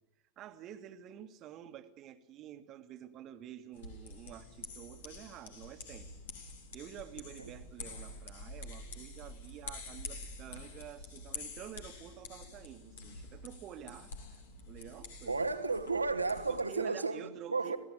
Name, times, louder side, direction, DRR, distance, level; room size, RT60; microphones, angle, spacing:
voice 1, 0.4-6.1 6.7-15.3 16.5-17.8, right 10 dB, 35° right, 1.8 m, -49 dB
sound 1, 3.7-16.6, left 3 dB, 60° left, 3.7 m, -47 dB
voice 2, 15.3-17.8, right 3 dB, 80° right, 1.7 m, -33 dB
26.0 x 17.0 x 9.6 m
figure-of-eight pair, 90°, 0 cm